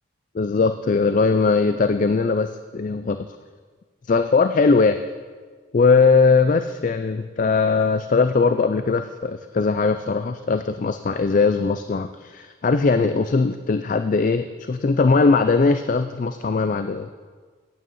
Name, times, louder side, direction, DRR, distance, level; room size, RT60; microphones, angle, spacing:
voice 1, 0.3-3.3 4.1-5.0 5.7-17.1, left 4 dB, 40° left, 10 dB, 0.3 m, -20 dB
9.3 x 8.8 x 7.1 m, 1.5 s
head